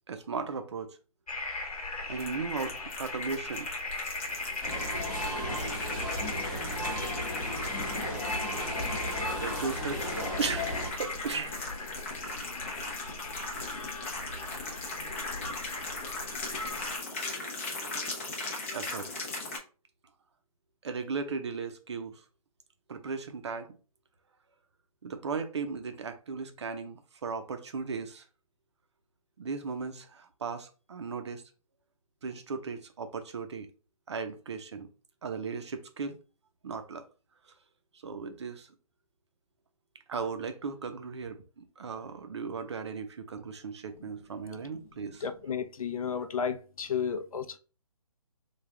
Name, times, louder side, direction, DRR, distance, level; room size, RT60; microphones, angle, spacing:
voice 1, 0.1-1.0 2.1-3.7 9.4-10.7 11.0-11.6 14.5-14.7 18.7-19.1 20.8-22.2 22.9-23.8 25.0-28.2 29.4-31.4 32.2-33.7 34.1-34.9 35.2-36.2 36.6-37.0 38.0-38.7 40.1-45.2 46.2-46.3, right 5 dB, 50° right, 0.5 m, -36 dB
sound 1, 1.3-17.0, left 3 dB, 85° left, 1.0 m, -38 dB
sound 2, 2.2-19.6, left 2 dB, 20° left, 0.5 m, -39 dB
sound 3, 4.6-10.9, equal, 5° right, 0.9 m, -35 dB
voice 2, 45.2-47.6, left 7 dB, 70° left, 0.5 m, -32 dB
3.3 x 2.3 x 3.6 m
hypercardioid pair, 165°, 19 cm